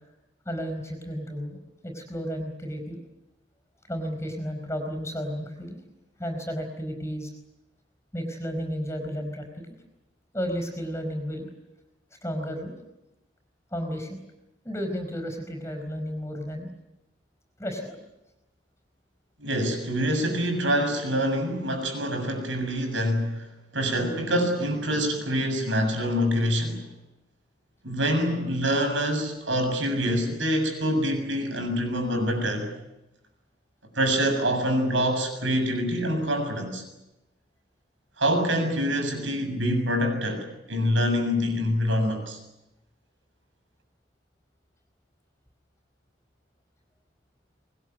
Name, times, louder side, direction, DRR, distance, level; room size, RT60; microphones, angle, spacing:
voice 1, 0.4-1.6 1.8-3.0 3.9-5.8 6.2-7.3 8.1-9.4 10.3-11.5 12.2-12.8 13.7-14.2 14.6-16.7 17.6-18.0, equal, 15° left, 5 dB, 4.6 m, -32 dB
voice 2, 19.4-23.5 23.7-26.8 27.8-32.7 34.0-36.8 38.2-42.4, equal, 80° right, 6 dB, 7.2 m, -25 dB
24.5 x 21.0 x 9.3 m, 0.94 s
head